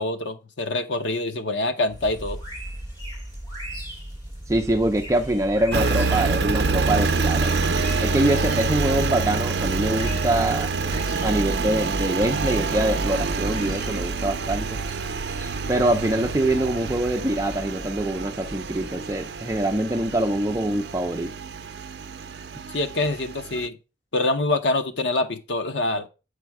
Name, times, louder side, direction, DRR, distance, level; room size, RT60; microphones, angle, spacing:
voice 1, 0.0-2.4 22.7-23.8 24.1-26.1, left 2 dB, 90° left, 0.9 m, -25 dB
sound 1, 1.9-21.3, equal, 20° left, 2.4 m, -38 dB
voice 2, 4.5-7.5 8.0-10.7 11.2-14.8 15.7-21.3, right 1 dB, 15° right, 0.5 m, -24 dB
Engine, 5.7-23.7, right 4 dB, 65° right, 0.5 m, -27 dB
7.4 x 5.0 x 4.6 m
head